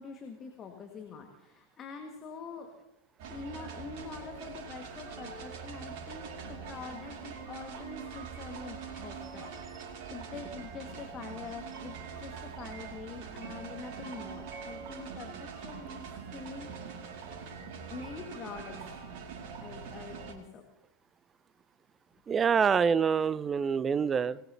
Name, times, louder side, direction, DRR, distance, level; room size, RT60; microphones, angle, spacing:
voice 1, 0.0-2.7 3.3-17.0 17.9-18.9 19.6-20.6, left 5 dB, 25° left, 3 dB, 1.7 m, -45 dB
sound 1, 3.2-20.3, right 6 dB, 45° right, 2.3 m, -43 dB
voice 2, 22.3-24.4, right 6 dB, 20° right, 20 dB, 0.4 m, -26 dB
25.0 x 18.0 x 2.8 m, 0.92 s
figure-of-eight pair, 90°, 0 cm